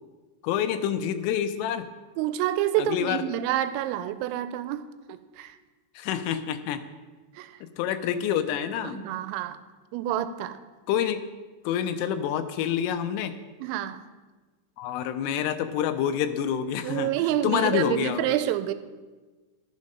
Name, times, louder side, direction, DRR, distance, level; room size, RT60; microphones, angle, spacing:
voice 1, 0.4-1.9 2.8-3.2 6.0-6.8 7.8-9.1 10.9-11.2 11.6-13.3 14.8-17.1 17.4-18.2, left 9 dB, 85° left, 9 dB, 3.2 m, -27 dB
voice 2, 2.2-5.6 7.3-7.6 8.8-9.6 9.9-10.6 13.6-14.0 16.8-18.7, right 12 dB, 90° right, 12 dB, 3.2 m, -28 dB
12.0 x 7.3 x 5.3 m, 1.3 s
omnidirectional pair, 5.9 m